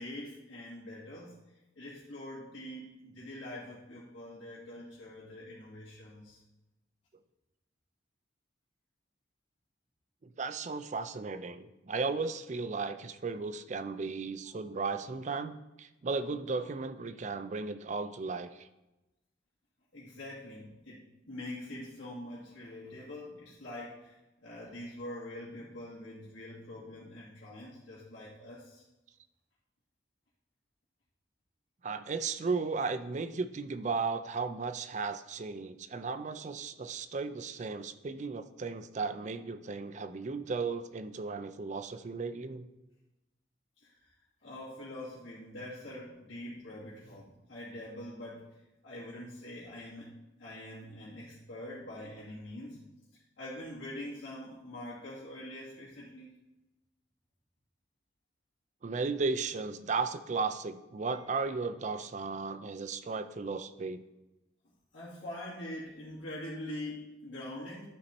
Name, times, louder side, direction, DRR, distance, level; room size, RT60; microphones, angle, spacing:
voice 1, 0.0-1.4 1.8-6.4 19.9-24.1 24.4-28.8 43.8-44.1 44.4-48.5 48.8-50.1 50.4-52.8 53.1-56.4 64.9-67.9, left 1 dB, 80° left, -9 dB, 2.4 m, -44 dB
voice 2, 10.4-18.7 31.8-42.7 58.8-64.0, right 4 dB, 40° right, 11 dB, 0.4 m, -35 dB
11.5 x 4.1 x 4.3 m, 1.0 s
head